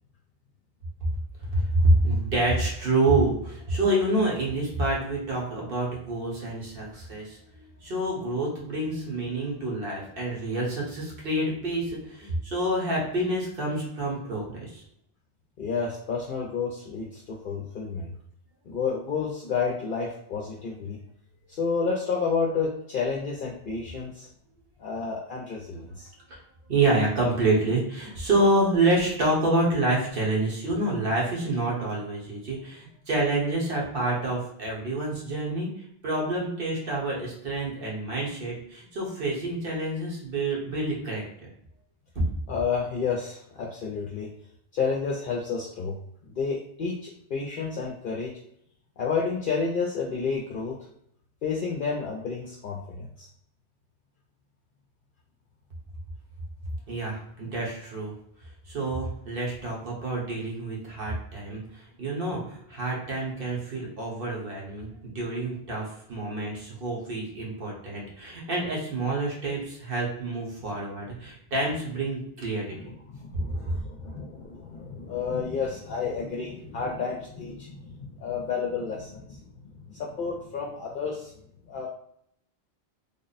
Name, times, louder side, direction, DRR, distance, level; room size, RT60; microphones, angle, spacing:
voice 1, 1.5-14.8 26.3-26.4 26.7-35.7 36.0-41.5 56.9-58.1 58.7-72.8, right 2 dB, 60° right, -3 dB, 1.4 m, -27 dB
voice 2, 15.6-18.1 18.7-21.0 21.5-24.3 24.8-26.1 42.5-44.3 44.7-46.0 46.3-48.3 49.0-50.8 51.4-53.3 72.7-79.4 79.7-81.3 81.7-81.9, left 5 dB, 60° left, -2 dB, 0.7 m, -30 dB
3.6 x 2.1 x 4.0 m, 0.73 s
omnidirectional pair, 1.1 m